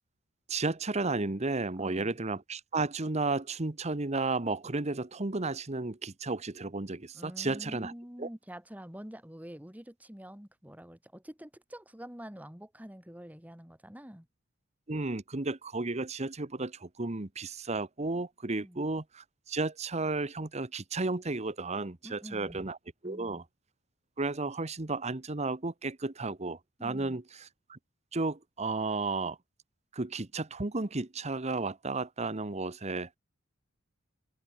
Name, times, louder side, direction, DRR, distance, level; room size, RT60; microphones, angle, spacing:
voice 1, 0.5-7.9 8.2-8.3 14.9-22.8 23.0-23.4 24.2-27.2 27.7-27.8 28.1-29.4 29.9-33.2, right 3 dB, 30° right, 1.1 m, -33 dB
voice 2, 1.8-2.1 7.1-14.3 18.5-18.9 22.0-22.6 23.0-23.4, equal, 10° right, 2.3 m, -47 dB
head